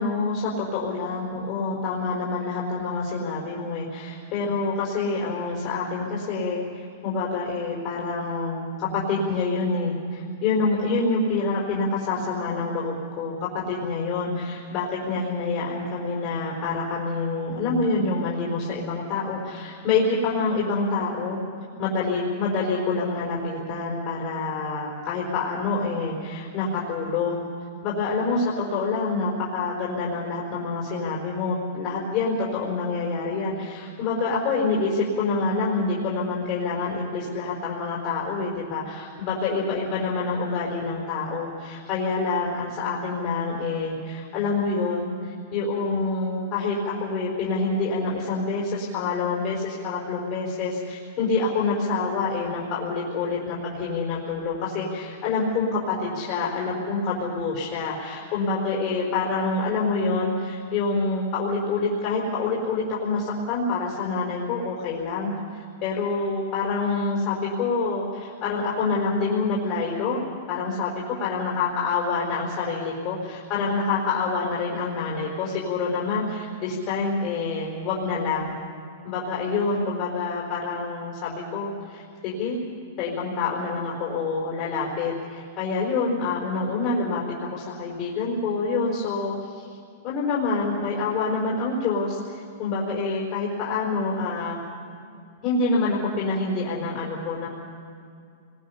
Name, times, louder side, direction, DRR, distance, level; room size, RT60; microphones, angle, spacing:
voice 1, 0.0-6.6 7.0-21.4 21.8-27.5 27.8-78.6 79.0-82.6 83.0-87.2 87.5-89.7 90.0-94.6 95.4-97.5, left 3 dB, 35° left, -5 dB, 4.4 m, -27 dB
28.5 x 22.0 x 5.7 m, 2.3 s
supercardioid pair, 170°, 0 cm